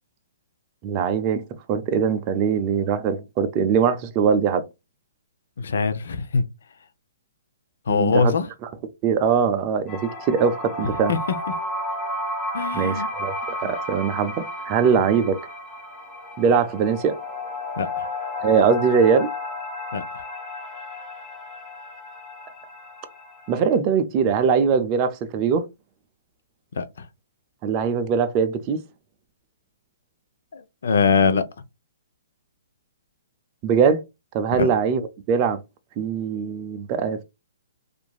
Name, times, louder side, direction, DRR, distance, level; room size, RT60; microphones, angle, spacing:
voice 1, 0.8-1.4 1.7-4.6 7.9-8.3 9.0-11.1 12.7-15.4 16.4-17.2 18.4-19.3 23.5-25.7 27.6-28.8 33.6-34.0 34.3-35.6 36.0-37.2, right 6 dB, 30° right, 0.5 m, -21 dB
voice 2, 5.6-6.4 7.9-8.5 11.1-11.2 12.5-13.1 13.6-13.7 17.8-18.0 19.9-20.0 26.7-27.1 30.5-31.4 34.5-34.7, left 5 dB, 70° left, 0.5 m, -22 dB
sound 1, 9.9-23.6, left 1 dB, 25° left, 1.1 m, -32 dB
2.9 x 2.5 x 2.3 m
hypercardioid pair, 150°, 0 cm